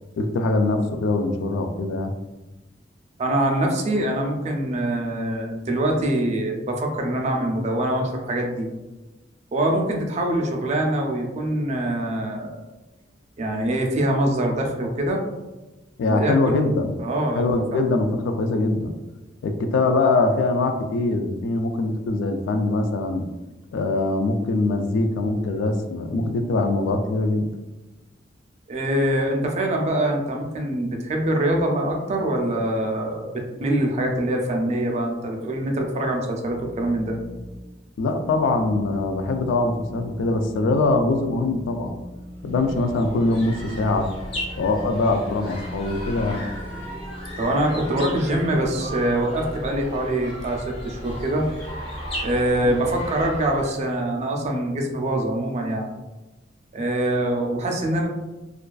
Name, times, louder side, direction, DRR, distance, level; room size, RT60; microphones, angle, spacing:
voice 1, 0.2-2.1 16.0-17.0 17.4-18.9 19.4-23.2 23.7-27.5 38.0-41.9 42.4-44.1 44.6-46.4 52.6-52.7, left 2 dB, 85° left, 7 dB, 0.3 m, -23 dB
voice 2, 3.2-8.7 9.5-12.6 13.4-15.2 16.1-16.5 17.0-17.4 28.7-37.1 47.4-51.5 52.2-55.9 56.7-58.1, right 1 dB, 35° right, 1 dB, 0.4 m, -24 dB
sound 1, 36.4-37.6 38.1-48.9, equal, 80° right, 0.6 m, -41 dB
sound 2, 42.4-54.0, equal, 30° left, 0.6 m, -35 dB
2.4 x 2.3 x 2.2 m, 1.1 s
head